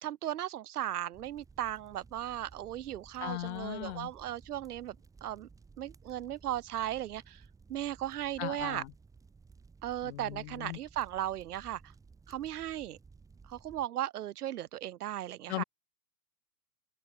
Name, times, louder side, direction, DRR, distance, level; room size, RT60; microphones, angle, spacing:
voice 1, 0.0-5.0 5.2-5.5 5.8-7.4 7.7-8.8 9.8-11.8 12.3-13.0 13.5-15.6, right 12 dB, 75° right, 1.3 m, -36 dB
sound 1, 1.1-13.8, right 4 dB, 5° right, 1.4 m, -57 dB
voice 2, 3.2-4.1 8.4-8.9 10.0-10.8 15.5-15.6, left 18 dB, 45° left, 1.0 m, -38 dB
open air
hypercardioid pair, 145°, 46 cm